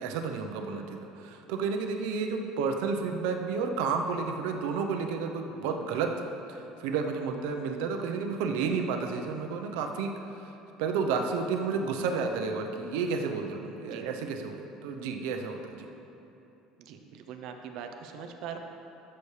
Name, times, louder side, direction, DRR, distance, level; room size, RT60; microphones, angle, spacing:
voice 1, 0.0-6.2 6.8-10.1 10.8-15.9, right 5 dB, 85° right, 4 dB, 0.8 m, -31 dB
voice 2, 16.8-18.6, right 7 dB, 50° right, 5 dB, 0.7 m, -41 dB
13.0 x 7.0 x 3.3 m, 2.9 s
cardioid pair, 180°, 0 cm